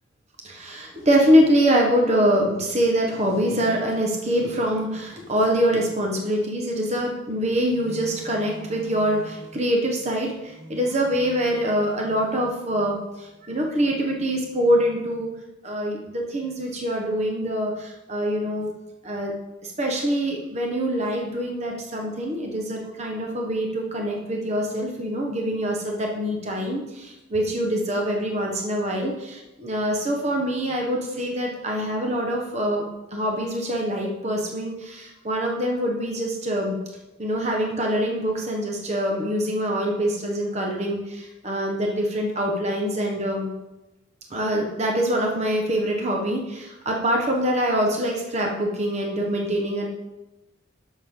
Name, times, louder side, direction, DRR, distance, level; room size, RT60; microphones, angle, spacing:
voice 1, 0.4-15.3 15.6-18.7 19.0-19.3 19.6-32.8 33.1-36.8 37.2-43.5 44.3-49.9, equal, 35° right, 0 dB, 1.1 m, -24 dB
12.5 x 6.4 x 3.8 m, 1.0 s
head